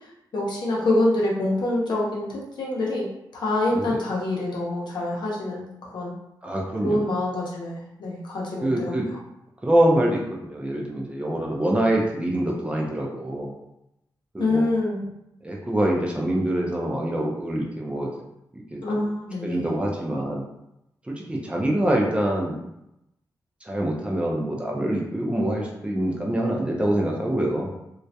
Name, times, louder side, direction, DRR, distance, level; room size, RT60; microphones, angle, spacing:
voice 1, 0.3-5.7 5.9-6.2 6.8-8.9 14.4-15.0 18.8-19.7, left 2 dB, 70° left, -4 dB, 0.7 m, -26 dB
voice 2, 6.4-7.0 8.6-9.1 9.6-13.5 14.3-14.7 15.4-18.1 18.5-18.8 19.4-20.4 21.1-22.6 23.6-27.7, right 1 dB, 15° right, -2 dB, 0.4 m, -25 dB
2.2 x 2.0 x 2.7 m, 0.85 s
wide cardioid pair, 140°, 8 cm